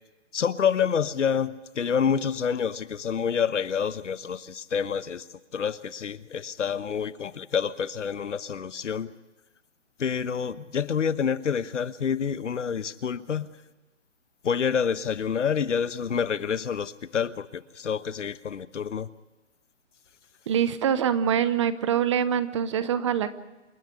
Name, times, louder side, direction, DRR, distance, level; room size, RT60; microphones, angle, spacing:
voice 1, 0.3-5.2 5.5-9.1 10.0-13.5 14.4-19.1, left 7 dB, 75° left, 14 dB, 1.2 m, -28 dB
voice 2, 20.5-23.3, right 8 dB, 25° right, 14 dB, 0.7 m, -24 dB
28.0 x 10.5 x 9.7 m, 1.1 s
hypercardioid pair, 155°, 37 cm